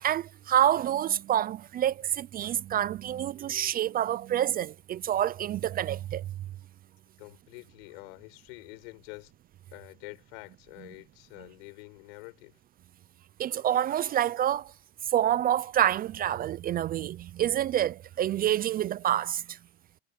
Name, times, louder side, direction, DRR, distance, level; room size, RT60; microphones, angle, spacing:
voice 1, 0.0-6.2 13.4-14.7 15.1-19.6, right 11 dB, 30° right, 0.5 m, -27 dB
voice 2, 7.2-9.3 9.7-12.6, left 28 dB, 75° left, 6.7 m, -47 dB
supercardioid pair, 130°, 31 cm